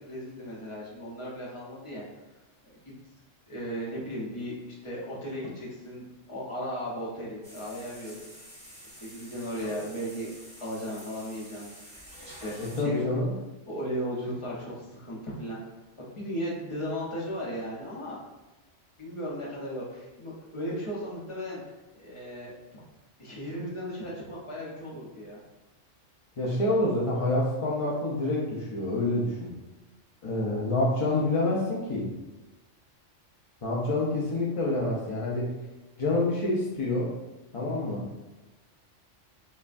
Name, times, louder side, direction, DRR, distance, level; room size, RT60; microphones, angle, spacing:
voice 1, 0.0-2.0 3.5-8.2 9.0-10.3 10.6-13.0 13.7-15.6 16.0-18.2 19.0-21.6 21.9-22.5 23.2-25.4, equal, 25° left, -5 dB, 0.9 m, -36 dB
sound 1, 7.4-12.8, equal, 5° right, 0.9 m, -48 dB
voice 2, 12.6-13.3 26.4-29.5 30.2-32.1 33.6-35.5 36.0-37.1 37.5-38.1, left 2 dB, 50° left, -5 dB, 0.4 m, -27 dB
5.4 x 2.2 x 2.5 m, 1.1 s
omnidirectional pair, 1.3 m